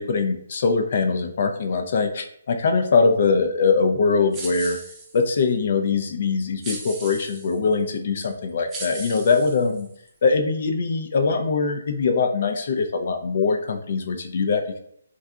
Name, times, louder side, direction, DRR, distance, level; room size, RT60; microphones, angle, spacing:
voice 1, 0.0-4.8 5.1-9.9 10.2-14.8, left 4 dB, 55° left, 5 dB, 0.4 m, -22 dB
sound 1, 4.3-5.4 6.6-7.6 8.2-8.3 8.7-10.1, right 2 dB, 15° right, 0.5 m, -37 dB
2.7 x 2.3 x 2.3 m, 0.68 s
hypercardioid pair, 150°, 0 cm